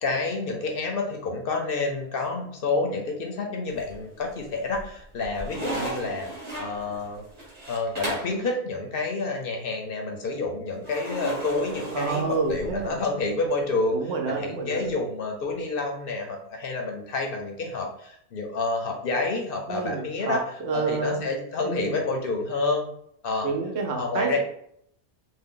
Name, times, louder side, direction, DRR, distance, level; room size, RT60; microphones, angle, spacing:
voice 1, 0.0-6.3 6.6-7.2 7.7-14.0 14.3-20.4 20.7-22.9 23.2-23.5 23.9-24.4, left 3 dB, 60° left, 2 dB, 0.7 m, -29 dB
sound 1, 3.7-4.3 4.7-8.4 10.8-12.9, right 1 dB, 40° right, 1.1 m, -35 dB
voice 2, 11.9-13.0 13.9-14.9 19.7-21.2 21.6-22.0 23.4-24.4, right 4 dB, 75° right, 2 dB, 0.9 m, -29 dB
2.6 x 2.1 x 3.6 m, 0.70 s
omnidirectional pair, 1.2 m